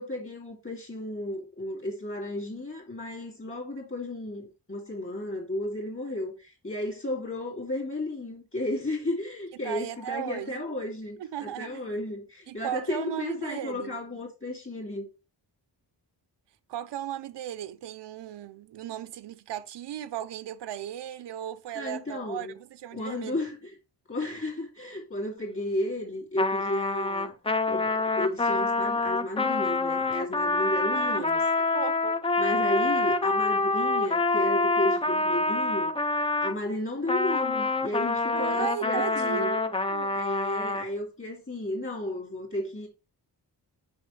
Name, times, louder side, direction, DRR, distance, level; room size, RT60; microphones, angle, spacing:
voice 1, 0.0-15.1 21.7-22.5 22.9-23.7 24.1-27.4 27.7-31.4 32.4-35.9 36.4-39.5 40.1-42.9, left 1 dB, 30° left, 2.6 m, -33 dB
voice 2, 9.6-10.6 11.2-11.8 12.5-14.0 16.7-23.4 30.9-32.2 38.3-40.2, right 11 dB, 85° right, 0.6 m, -36 dB
Trumpet, 26.4-36.6 37.1-40.9, left 3 dB, 15° left, 0.3 m, -26 dB
6.4 x 5.5 x 3.2 m
wide cardioid pair, 150°, 41 cm